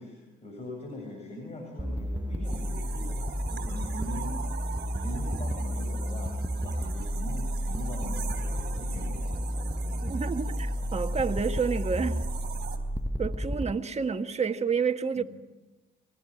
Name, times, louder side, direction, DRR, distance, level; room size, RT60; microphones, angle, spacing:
voice 1, 0.0-4.6 5.0-10.2 15.1-15.2, left 1 dB, 35° left, 7.8 m, -42 dB
sound 1, 1.8-13.7, equal, 10° right, 0.8 m, -32 dB
sound 2, 2.4-12.8, right 8 dB, 55° right, 3.7 m, -42 dB
voice 2, 10.0-12.2 13.2-15.2, right 5 dB, 35° right, 1.6 m, -29 dB
24.5 x 19.5 x 10.0 m
cardioid pair, 90°, 20 cm